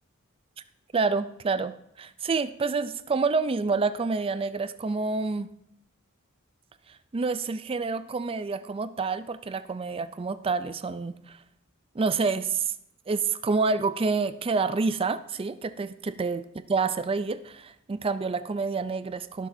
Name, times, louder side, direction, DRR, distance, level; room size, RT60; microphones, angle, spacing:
voice 1, 0.9-5.5 6.9-11.4 11.9-12.7 13.1-19.5, right 4 dB, 25° right, 13 dB, 0.4 m, -28 dB
16.0 x 6.3 x 2.7 m, 0.74 s
head